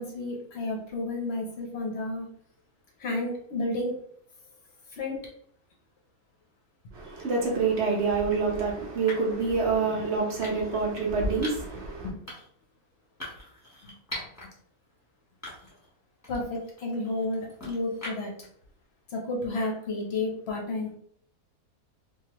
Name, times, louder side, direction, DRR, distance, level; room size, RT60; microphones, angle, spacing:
voice 1, 0.0-2.3 3.0-3.9 4.9-5.2 12.0-12.2 13.8-13.9 16.3-18.3 19.1-21.0, left 2 dB, 55° left, 0.8 m, -31 dB
voice 2, 6.9-12.1, right 4 dB, 55° right, 1.0 m, -27 dB
sound 1, 7.8-8.0 9.1-9.4 10.4-10.8 11.4-11.8 12.3-12.6 13.2-14.5 14.9-15.0 15.4-15.9 16.2-18.4, left 1 dB, 10° left, 1.1 m, -42 dB
3.2 x 2.4 x 2.9 m
omnidirectional pair, 1.6 m